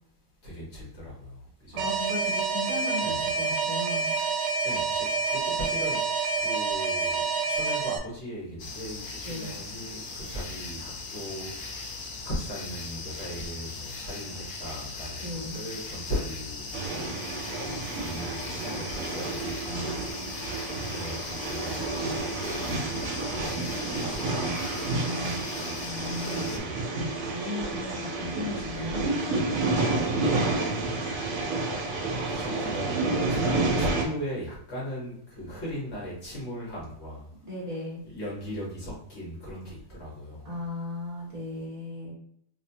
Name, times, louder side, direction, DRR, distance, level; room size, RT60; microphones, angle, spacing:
voice 1, 0.4-1.3 1.7-1.9 3.0-3.3 4.6-6.0 6.4-17.2 17.9-19.4 20.9-23.0 23.3-23.6 23.9-24.6 26.5-26.8 28.2-28.4 29.5-31.0 32.3-37.2 38.0-40.5, equal, 45° left, -5 dB, 1.5 m, -38 dB
voice 2, 1.7-4.2 9.2-9.6 15.2-15.6 19.7-20.4 24.9-25.4 25.8-26.7 27.3-29.1 37.4-38.0 40.4-42.1, left 1 dB, 25° right, -7 dB, 1.6 m, -36 dB
Alarm, 1.8-8.0, right 4 dB, 80° right, 0.6 m, -28 dB
sound 1, 8.6-26.6, left 4 dB, 75° left, 0.4 m, -39 dB
sound 2, 16.7-34.0, right 3 dB, 65° right, 1.1 m, -30 dB
3.1 x 3.0 x 2.7 m, 0.68 s
omnidirectional pair, 1.7 m